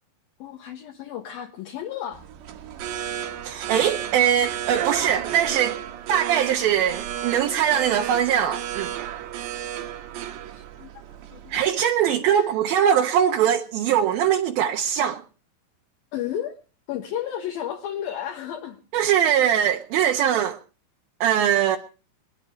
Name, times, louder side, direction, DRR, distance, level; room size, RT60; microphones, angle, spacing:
voice 1, 0.4-2.2 10.5-11.6 12.3-12.5 16.1-16.6 16.9-18.8, left 10 dB, 70° left, 2.9 m, -33 dB
sound 1, 2.1-11.7, right 10 dB, 90° right, 3.6 m, -33 dB
voice 2, 3.4-5.8 6.1-8.9 11.5-15.2 18.9-20.6 21.2-21.8, right 9 dB, 70° right, 2.7 m, -21 dB
24.0 x 10.5 x 5.2 m
omnidirectional pair, 4.8 m